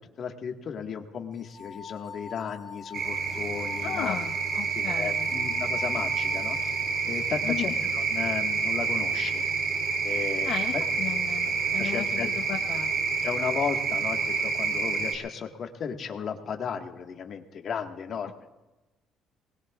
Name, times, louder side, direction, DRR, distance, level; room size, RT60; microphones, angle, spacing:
voice 1, 0.2-4.1 4.7-6.7 7.1-9.4 10.0-10.8 11.8-12.3 13.2-18.5, left 7 dB, 50° left, 4 dB, 1.7 m, -35 dB
sound 1, 1.4-7.2, left 5 dB, 5° left, 3.6 m, -45 dB
sound 2, 2.9-15.1, right 4 dB, 55° right, 2.7 m, -28 dB
voice 2, 3.8-5.3 7.4-7.7 10.4-10.7 11.0-12.9, left 10 dB, 70° left, 3 dB, 0.9 m, -35 dB
24.5 x 20.0 x 2.5 m, 1.1 s
cardioid pair, 110°, 0 cm